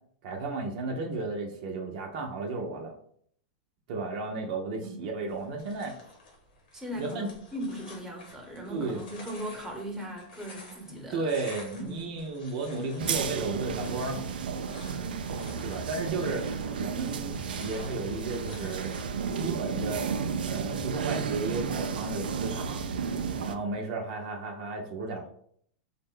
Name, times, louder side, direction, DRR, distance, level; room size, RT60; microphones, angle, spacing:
voice 1, 0.2-2.9 3.9-6.0 7.0-7.3 8.7-9.0 10.9-14.3 15.6-16.5 16.8-19.0 19.3-20.1 20.5-22.8 23.4-25.3, right 3 dB, 60° right, 1 dB, 0.7 m, -34 dB
sound 1, 5.3-19.0, left 2 dB, 75° left, 1.2 m, -51 dB
voice 2, 6.7-11.2 11.8-12.2, equal, 10° right, 1 dB, 1.0 m, -38 dB
sound 2, 13.0-23.6, right 6 dB, 90° right, 0.3 m, -32 dB
3.7 x 2.1 x 3.6 m, 0.63 s
hypercardioid pair, 115°, 5 cm